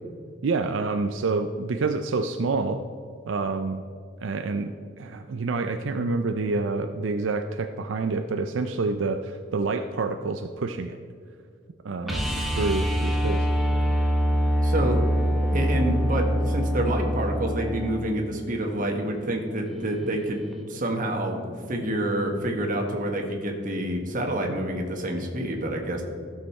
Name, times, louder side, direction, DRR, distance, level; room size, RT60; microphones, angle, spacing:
voice 1, 0.4-2.8 3.3-3.8 4.2-11.0 11.8-12.2 12.6-13.5, right 3 dB, 80° right, 7 dB, 0.5 m, -27 dB
voice 2, 12.0-12.5 14.6-15.0 15.5-20.4 20.7-26.0, right 1 dB, 45° right, 2 dB, 1.5 m, -28 dB
sound 1, 12.1-18.0 20.5-20.6, equal, ahead, 1.3 m, -24 dB
14.5 x 6.6 x 4.3 m, 2.2 s
head